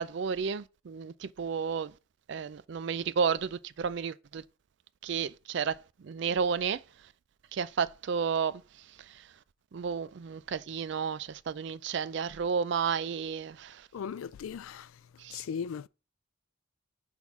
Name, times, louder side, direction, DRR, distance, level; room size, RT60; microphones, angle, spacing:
voice 1, 0.0-1.9 2.3-4.4 5.0-6.8 7.5-8.6 9.0-9.3 9.7-13.9 15.2-15.4, right 6 dB, 55° right, 0.4 m, -32 dB
voice 2, 13.9-14.9 15.3-15.9, left 7 dB, 80° left, 0.3 m, -37 dB
6.2 x 3.7 x 5.7 m
head